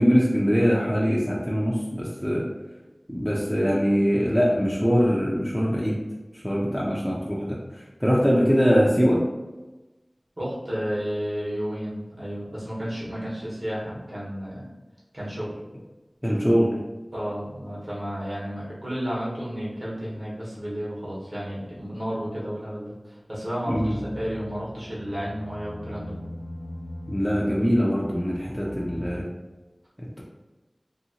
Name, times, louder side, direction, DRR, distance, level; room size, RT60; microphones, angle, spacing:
voice 1, 0.0-2.4 3.1-6.0 6.4-7.6 8.0-9.2 16.2-16.8 23.7-24.0 27.1-29.3 30.0-30.2, equal, 5° left, -6 dB, 0.5 m, -22 dB
voice 2, 10.4-14.6 15.1-15.6 17.1-26.2, equal, 60° right, -8 dB, 1.3 m, -32 dB
sound 1, 23.7-29.2, left 1 dB, 60° left, 0.4 m, -39 dB
2.8 x 2.8 x 2.7 m, 1.1 s
wide cardioid pair, 50°, 0 cm